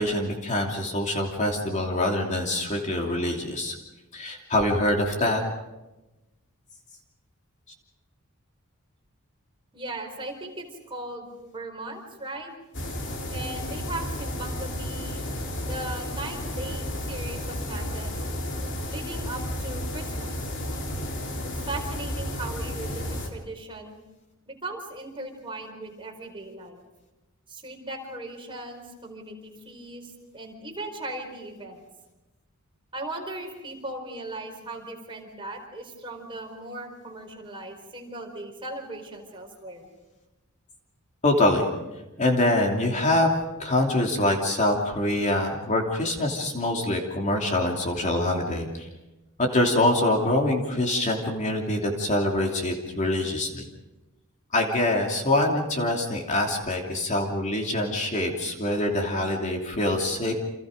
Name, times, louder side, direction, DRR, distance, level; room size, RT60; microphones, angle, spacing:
voice 1, 0.0-3.7 4.1-5.4 41.2-41.7 42.2-43.3 43.6-48.9 49.4-53.7 54.5-60.3, left 1 dB, 35° left, 1 dB, 2.8 m, -24 dB
voice 2, 9.7-12.5 13.3-15.2 15.6-18.1 18.9-20.3 21.4-23.9 24.5-26.8 27.5-31.9 32.9-39.9, right 2 dB, 25° right, 1 dB, 4.7 m, -38 dB
sound 1, 12.7-23.3, left 1 dB, 55° left, 3.3 m, -32 dB
30.0 x 27.0 x 5.2 m, 1.0 s
head